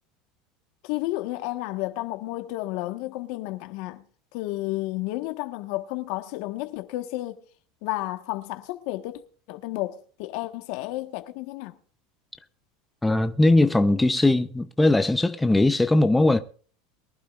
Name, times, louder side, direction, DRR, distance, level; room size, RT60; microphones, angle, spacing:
voice 1, 0.8-4.0 4.3-7.4 7.8-9.2 9.5-11.8, left 18 dB, 65° left, 1.4 m, -32 dB
voice 2, 13.0-16.4, left 2 dB, 10° left, 0.8 m, -20 dB
23.0 x 11.5 x 2.5 m
supercardioid pair, 110°, 0 cm